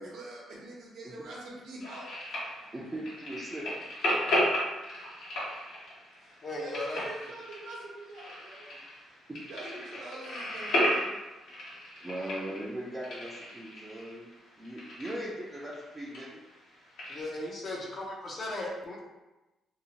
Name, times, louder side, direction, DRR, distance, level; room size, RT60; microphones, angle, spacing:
voice 1, 0.0-2.0 4.7-5.1 6.2-9.2 9.5-11.1 12.0-12.7, right 2 dB, 80° right, -4 dB, 0.8 m, -45 dB
sound 1, 1.8-17.2, equal, 80° left, 1.1 m, -35 dB
voice 2, 2.7-3.7 12.0-14.3 14.6-16.4, right 1 dB, 20° right, -7 dB, 0.5 m, -39 dB
voice 3, 6.4-7.3 17.1-19.0, left 1 dB, 50° left, -2 dB, 0.6 m, -37 dB
2.7 x 2.0 x 2.8 m, 1.1 s
cardioid pair, 90°, 0 cm